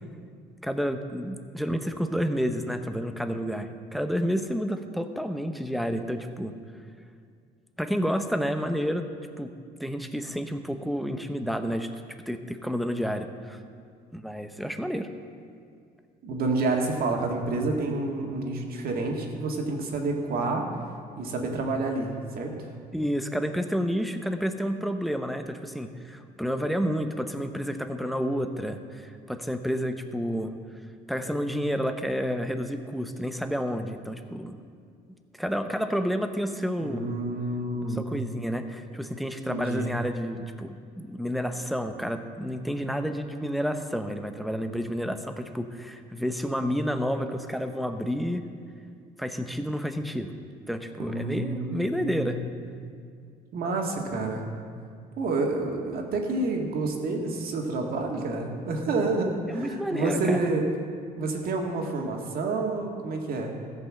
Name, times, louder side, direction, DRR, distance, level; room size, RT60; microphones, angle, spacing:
voice 1, 0.6-6.5 7.8-9.1 9.4-9.5 9.8-11.9 12.3-13.6 14.1-15.1 22.9-30.5 31.1-34.6 35.4-37.0 37.9-48.5 49.2-50.3 50.7-52.4 59.5-60.4, equal, ahead, 7 dB, 0.7 m, -30 dB
voice 2, 16.2-20.7 21.2-22.7 36.8-38.1 39.5-39.9 51.0-52.5 53.5-54.5 55.2-60.6 61.1-63.5, right 3 dB, 60° right, 2 dB, 1.8 m, -29 dB
15.0 x 5.4 x 7.5 m, 2.2 s
cardioid pair, 110°, 17 cm